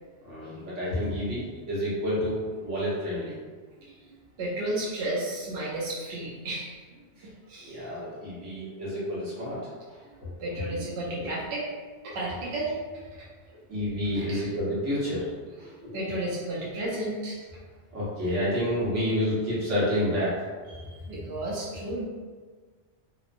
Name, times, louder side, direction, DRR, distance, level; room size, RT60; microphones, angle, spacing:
voice 1, 0.2-3.3 7.2-7.3 7.6-9.9 10.2-10.7 11.2-11.3 13.7-15.3 15.6-15.9 17.9-20.3, equal, 85° right, -9 dB, 1.4 m, -29 dB
voice 2, 3.8-4.1 4.4-7.0 7.5-7.9 10.0-10.1 10.4-11.7 12.0-12.8 14.1-14.5 15.9-17.4 20.6-22.0, right 1 dB, 70° right, -7 dB, 0.8 m, -33 dB
3.0 x 2.0 x 2.5 m, 1.5 s
omnidirectional pair, 1.2 m